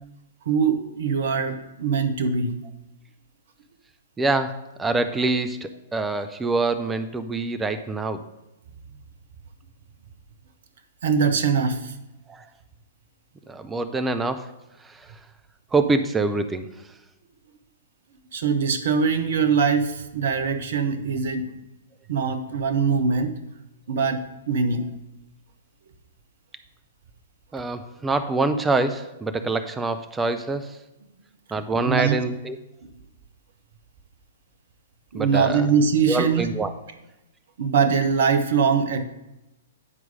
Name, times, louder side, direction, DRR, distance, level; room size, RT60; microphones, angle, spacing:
voice 1, 0.5-2.6 11.0-11.9 18.3-21.5 22.1-23.3 23.9-24.8 31.9-32.2 35.1-36.5 37.6-39.0, right 5 dB, 55° right, 9 dB, 0.8 m, -22 dB
voice 2, 4.2-8.2 12.3-12.5 13.5-14.5 14.8-15.0 15.7-16.7 27.5-30.8 31.5-32.6 35.1-35.7 36.1-36.7, right 3 dB, 10° right, 10 dB, 0.5 m, -25 dB
9.8 x 4.6 x 5.1 m, 0.96 s
figure-of-eight pair, 110°, 0 cm